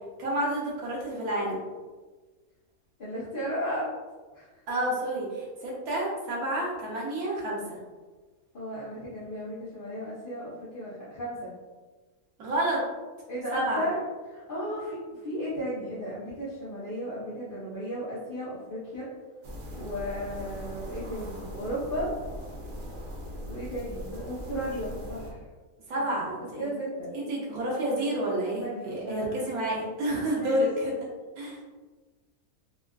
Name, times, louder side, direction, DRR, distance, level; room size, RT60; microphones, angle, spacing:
voice 1, 0.2-1.6 4.7-7.8 12.4-12.8 13.5-13.9 25.9-26.7 27.1-30.9 31.4-31.6, right 1 dB, 85° right, -4 dB, 1.3 m, -29 dB
voice 2, 3.0-3.9 4.3-4.5 8.5-11.5 13.3-19.1 19.7-22.1 23.5-25.4 26.2-27.1 28.6-29.3 30.4-30.6, equal, 45° left, -11 dB, 0.8 m, -35 dB
sound 1, 19.4-25.3, equal, 70° right, 0.4 m, -40 dB
3.5 x 2.3 x 2.3 m, 1.3 s
omnidirectional pair, 1.5 m